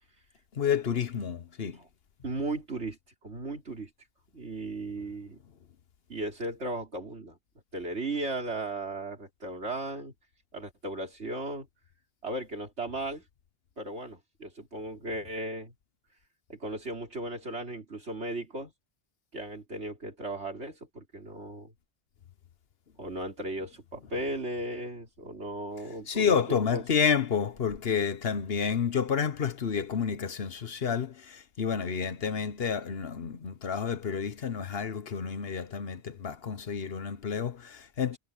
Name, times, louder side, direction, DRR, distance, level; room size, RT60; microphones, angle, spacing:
voice 1, 0.5-1.8 26.1-38.2, left 7 dB, 65° left, 1.2 m, -30 dB
voice 2, 2.2-3.9 4.3-5.4 6.1-7.4 7.7-10.1 10.5-11.7 12.2-13.2 13.8-15.7 16.5-18.7 19.3-21.7 23.0-26.8, right 2 dB, 90° right, 4.1 m, -36 dB
omnidirectional pair, 1.1 m